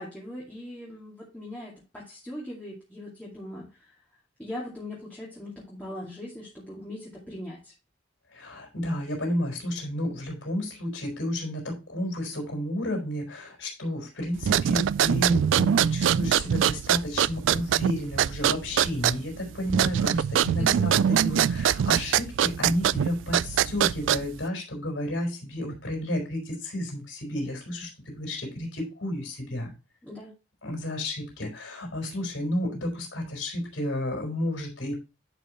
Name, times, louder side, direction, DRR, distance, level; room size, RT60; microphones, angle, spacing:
voice 1, 0.0-3.9 4.4-7.7 20.6-21.0 30.0-30.3, left 1 dB, 10° left, -6 dB, 2.3 m, -39 dB
voice 2, 8.3-29.7 30.6-35.0, left 1 dB, 90° left, 1 dB, 4.3 m, -32 dB
sound 1, 14.4-24.5, right 9 dB, 85° right, 0.3 m, -24 dB
11.0 x 5.5 x 3.0 m, 0.30 s
head